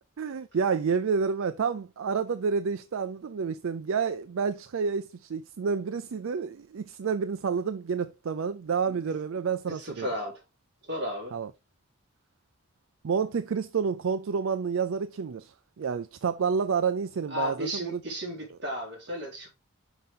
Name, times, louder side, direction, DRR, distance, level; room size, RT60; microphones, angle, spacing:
voice 1, 0.2-10.1 11.3-11.5 13.0-18.0 18.5-18.6, right 6 dB, 75° right, 0.4 m, -29 dB
voice 2, 9.8-10.4 10.9-11.3 17.3-19.5, left 1 dB, 55° right, 3.5 m, -34 dB
6.0 x 5.3 x 3.6 m
head